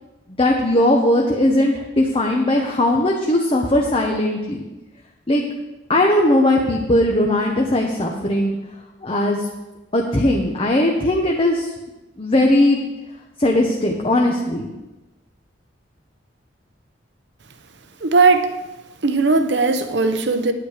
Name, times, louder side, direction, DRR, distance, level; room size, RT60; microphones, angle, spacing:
voice 1, 0.4-4.6 5.3-5.4 5.9-8.6 9.0-9.5 9.9-11.7 12.2-12.8 13.4-14.7, left 1 dB, 30° left, 1 dB, 0.8 m, -18 dB
voice 2, 18.0-18.5 19.0-20.5, right 4 dB, 70° right, 9 dB, 0.9 m, -17 dB
9.8 x 9.1 x 4.9 m, 1.1 s
head